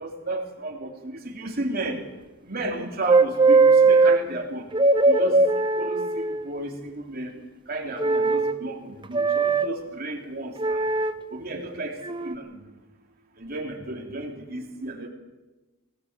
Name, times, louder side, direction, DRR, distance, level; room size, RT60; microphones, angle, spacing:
voice 1, 0.0-2.0 2.4-4.7 5.1-7.3 7.7-10.8 11.3-12.6 13.4-15.1, right 2 dB, 45° right, 1 dB, 3.5 m, -33 dB
sound 1, 3.1-4.2 4.7-6.4 8.0-8.6 9.1-9.7 10.6-11.1 12.0-12.3, right 3 dB, 25° right, 0.8 m, -19 dB
22.0 x 19.0 x 7.6 m, 1.1 s
head